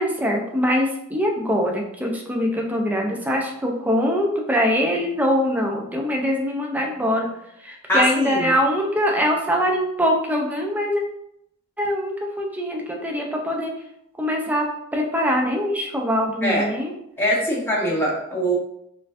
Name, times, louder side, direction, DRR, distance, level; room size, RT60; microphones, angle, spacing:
voice 1, 0.0-7.3 7.6-11.0 11.8-13.7 14.2-16.9, equal, 10° right, 0 dB, 0.5 m, -23 dB
voice 2, 7.9-8.5 16.4-16.7 17.2-18.6, equal, 10° left, -5 dB, 0.9 m, -22 dB
4.3 x 2.6 x 2.5 m, 0.78 s
head